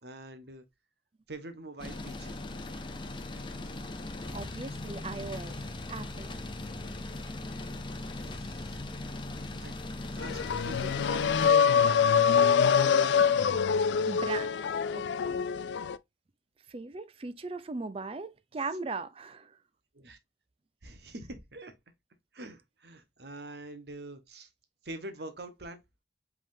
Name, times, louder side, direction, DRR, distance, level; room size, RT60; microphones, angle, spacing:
voice 1, 0.0-0.6 1.3-2.4 8.1-9.1 9.6-9.8 10.1-13.5 19.9-20.2 20.8-21.7 22.3-24.5 24.8-25.8, right 2 dB, 65° right, 1.0 m, -45 dB
sound 1, 1.8-11.5, left 2 dB, 25° left, 0.6 m, -39 dB
voice 2, 4.3-5.6 5.9-6.4 14.1-14.5 14.9-15.4 16.7-19.6, right 3 dB, 30° right, 0.4 m, -38 dB
sound 2, 10.2-16.0, left 7 dB, 75° left, 0.3 m, -25 dB
5.3 x 3.6 x 2.6 m
head